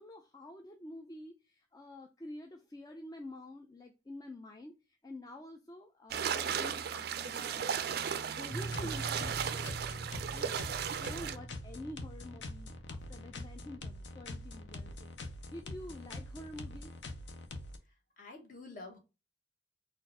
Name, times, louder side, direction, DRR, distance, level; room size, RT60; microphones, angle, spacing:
voice 1, 0.0-10.6 10.9-16.9, left 1 dB, 20° left, 0.4 m, -48 dB
sound 1, 6.1-11.4, right 7 dB, 55° right, 0.4 m, -36 dB
Piano, 8.5-14.1, right 3 dB, 5° left, 0.8 m, -46 dB
sound 2, 8.6-17.8, left 2 dB, 65° left, 0.7 m, -44 dB
voice 2, 17.8-19.0, left 3 dB, 45° left, 1.2 m, -49 dB
4.3 x 2.5 x 4.7 m
head